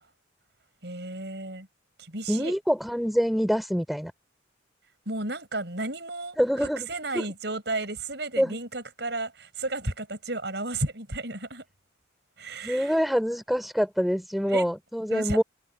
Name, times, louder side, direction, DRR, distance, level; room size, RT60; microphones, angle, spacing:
voice 1, 0.8-1.7 2.0-2.5 5.0-11.6 12.4-13.0 14.4-14.6 15.1-15.4, right 2 dB, 60° right, 6.7 m, -33 dB
voice 2, 2.3-4.1 6.4-6.9 7.1-7.2 8.4-8.6 12.6-15.4, equal, ahead, 4.7 m, -25 dB
head